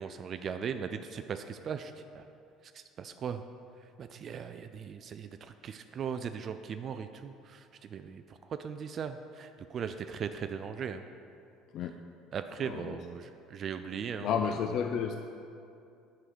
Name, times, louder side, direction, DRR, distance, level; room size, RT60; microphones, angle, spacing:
voice 1, 0.0-2.2 3.0-3.4 4.0-7.6 7.9-8.2 8.5-11.0 12.3-14.3, right 7 dB, 45° right, 9 dB, 0.3 m, -38 dB
voice 2, 12.6-13.0 14.2-15.2, left 7 dB, 60° left, 6 dB, 0.4 m, -31 dB
9.8 x 3.8 x 6.1 m, 2.5 s
cardioid pair, 110°, 0 cm